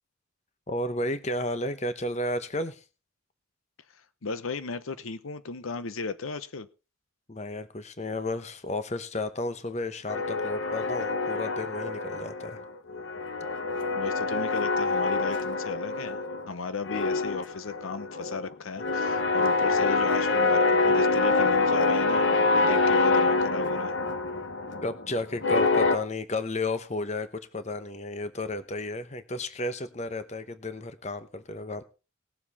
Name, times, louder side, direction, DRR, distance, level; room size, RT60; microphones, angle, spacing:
voice 1, 0.7-2.8 7.3-12.6 24.8-31.8, left 2 dB, 35° left, 0.9 m, -33 dB
voice 2, 4.2-6.7 13.9-16.2 16.5-22.2 22.5-24.0, left 4 dB, 85° left, 0.8 m, -35 dB
sound 1, 10.1-12.6 12.9-16.5 16.8-26.0, left 3 dB, 65° left, 1.1 m, -26 dB
19.0 x 7.4 x 4.2 m
head